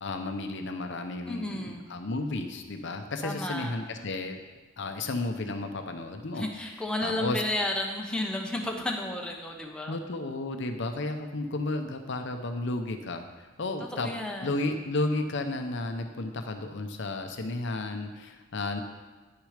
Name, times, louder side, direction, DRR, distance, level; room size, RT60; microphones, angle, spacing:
voice 1, 0.0-4.4 4.8-6.5 7.0-7.4 9.9-18.8, left 2 dB, 60° left, 6 dB, 0.7 m, -33 dB
voice 2, 1.3-1.9 3.2-3.7 6.3-10.0 13.8-14.7, left 1 dB, 5° left, 0 dB, 0.8 m, -32 dB
10.0 x 6.3 x 5.0 m, 1.3 s
head